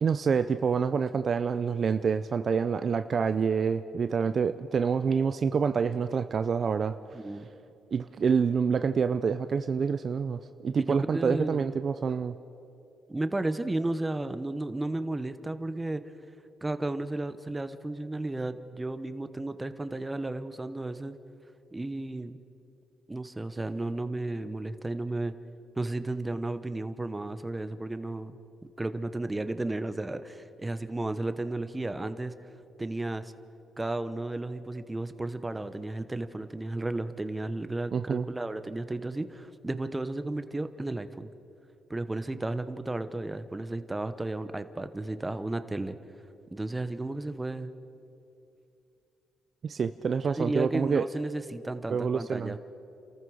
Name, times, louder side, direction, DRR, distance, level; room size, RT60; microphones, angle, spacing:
voice 1, 0.0-6.9 7.9-12.3 37.9-38.3 49.6-51.0 51.9-52.5, right 6 dB, 45° right, 11 dB, 0.5 m, -27 dB
voice 2, 7.1-7.5 10.9-11.6 13.1-16.0 16.6-21.1 21.7-22.3 23.1-25.3 25.8-28.4 28.8-32.3 32.8-33.3 33.8-41.3 41.9-46.0 46.5-47.7 50.2-52.6, right 2 dB, 15° right, 11 dB, 1.0 m, -33 dB
30.0 x 14.0 x 6.4 m, 2.7 s
cardioid pair, 90°, 0 cm